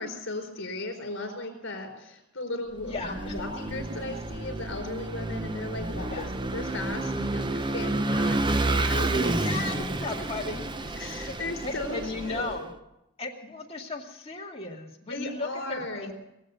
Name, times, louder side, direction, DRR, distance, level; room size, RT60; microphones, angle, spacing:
voice 1, 0.0-9.4 9.8-9.9 11.0-12.5 15.1-16.1, left 2 dB, 60° left, 4 dB, 4.5 m, -36 dB
voice 2, 2.8-3.3 6.1-6.3 9.3-9.8 10.0-10.9 11.6-12.7 13.2-16.1, left 3 dB, 30° left, -1 dB, 2.2 m, -36 dB
Vehicle / Engine, 2.8-12.6, right 2 dB, 20° right, 0.6 m, -30 dB
21.5 x 7.9 x 8.2 m, 0.88 s
head